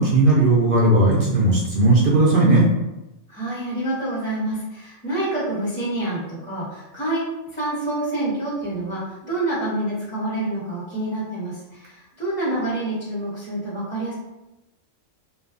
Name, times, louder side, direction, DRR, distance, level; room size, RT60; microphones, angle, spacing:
voice 1, 0.0-2.7, right 2 dB, 65° right, -5 dB, 0.5 m, -16 dB
voice 2, 3.3-7.2 7.5-14.1, right 1 dB, 10° left, -8 dB, 0.6 m, -27 dB
2.5 x 2.3 x 2.5 m, 0.96 s
omnidirectional pair, 1.4 m